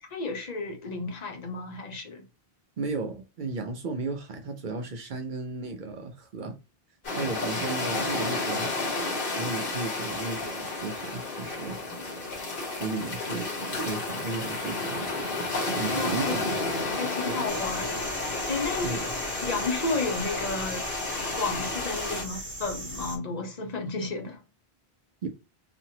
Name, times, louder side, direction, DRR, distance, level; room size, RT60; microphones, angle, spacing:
voice 1, 0.0-2.2 15.8-16.4 16.9-18.0 18.5-19.0 19.4-20.9 21.4-24.4, left 3 dB, 45° left, 0.8 m, -32 dB
voice 2, 2.8-6.6 7.1-8.7 9.4-11.8 12.7-15.0 15.7-16.5 17.3-17.4 18.8-19.0 25.2-25.3, right 3 dB, 60° right, 0.6 m, -34 dB
sound 1, 7.0-22.2, left 2 dB, 60° left, 1.3 m, -31 dB
sound 2, 17.5-23.2, right 1 dB, 35° right, 1.0 m, -38 dB
2.9 x 2.6 x 2.7 m
omnidirectional pair, 1.0 m